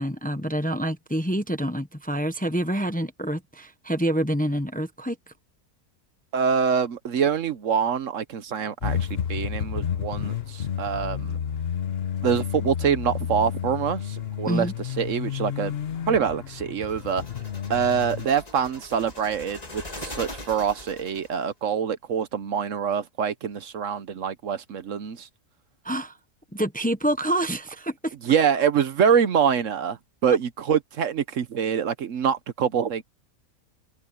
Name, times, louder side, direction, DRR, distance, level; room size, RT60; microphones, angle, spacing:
voice 1, 0.0-5.2 14.4-14.7 25.8-26.2 26.5-28.1, right 1 dB, 5° left, 0.9 m, -27 dB
voice 2, 6.3-11.4 12.2-14.7 15.0-15.7 16.1-17.2 17.7-25.3 28.2-33.0, right 7 dB, 65° right, 1.2 m, -25 dB
sound 1, 8.8-18.3, left 8 dB, 50° left, 1.1 m, -31 dB
sound 2, 16.9-21.4, left 2 dB, 25° left, 2.1 m, -41 dB
omnidirectional pair, 1.5 m